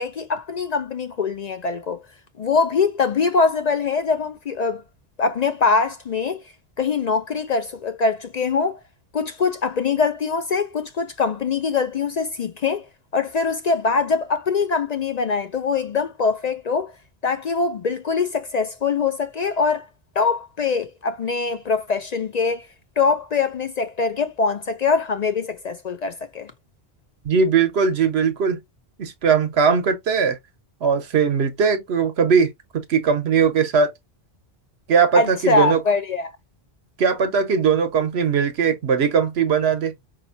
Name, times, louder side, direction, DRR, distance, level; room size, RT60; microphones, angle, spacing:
voice 1, 0.0-2.0 2.4-4.8 5.2-6.4 6.8-8.8 9.1-12.9 13.1-16.9 17.2-19.9 20.2-22.7 23.0-26.5 35.1-36.3, left 4 dB, 55° left, 0.5 m, -23 dB
voice 2, 27.2-28.6 29.0-30.4 30.8-33.9 34.9-35.8 37.0-39.9, right 6 dB, 85° right, 1.1 m, -19 dB
5.2 x 2.7 x 2.6 m
omnidirectional pair, 1.1 m